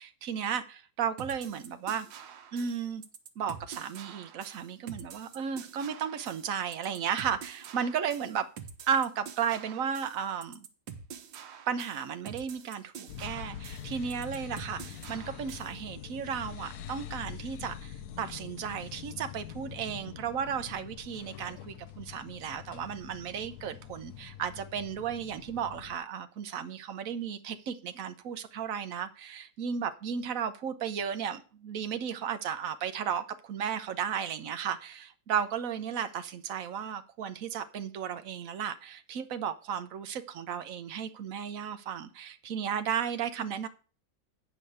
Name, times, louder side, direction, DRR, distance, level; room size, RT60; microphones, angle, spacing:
voice 1, 0.0-2.1 2.5-3.0 3.4-8.5 8.9-10.7 11.7-43.7, right 7 dB, 55° right, 1.1 m, -34 dB
sound 1, 1.2-15.8, right 7 dB, 85° right, 1.6 m, -47 dB
sound 2, 13.1-26.0, left 10 dB, 65° left, 1.1 m, -44 dB
8.7 x 5.1 x 7.8 m
omnidirectional pair, 2.0 m